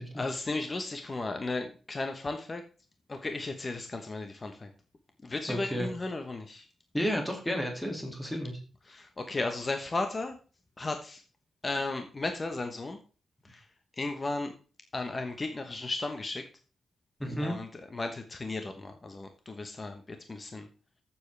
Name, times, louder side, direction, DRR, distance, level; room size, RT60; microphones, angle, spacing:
voice 1, 0.1-2.6 3.1-4.7 5.2-6.7 8.8-10.4 10.8-11.2 11.6-13.0 13.4-13.7 14.0-14.5 14.9-16.5 17.4-20.7, left 2 dB, 30° left, 6 dB, 1.1 m, -35 dB
voice 2, 5.5-5.9 6.9-8.6 17.2-17.6, equal, 5° left, 2 dB, 2.4 m, -32 dB
14.0 x 7.2 x 3.3 m, 0.37 s
wide cardioid pair, 115°, 0 cm